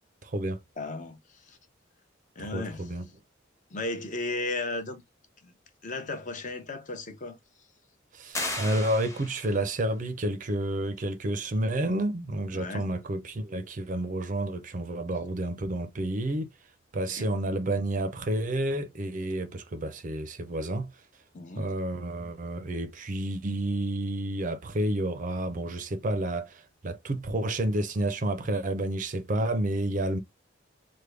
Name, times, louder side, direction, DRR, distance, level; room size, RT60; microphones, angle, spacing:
voice 1, 0.2-0.6 2.4-3.1 8.1-16.5 16.9-20.9 21.6-30.2, right 1 dB, 40° right, 0.5 m, -30 dB
voice 2, 0.8-1.6 2.4-2.9 3.7-5.0 5.4-5.5 5.8-7.4 12.5-12.9 17.1-17.3 21.3-21.7, left 2 dB, 40° left, 0.7 m, -35 dB
sound 1, 8.3-9.7, left 2 dB, 15° left, 0.9 m, -35 dB
3.4 x 2.2 x 3.1 m
head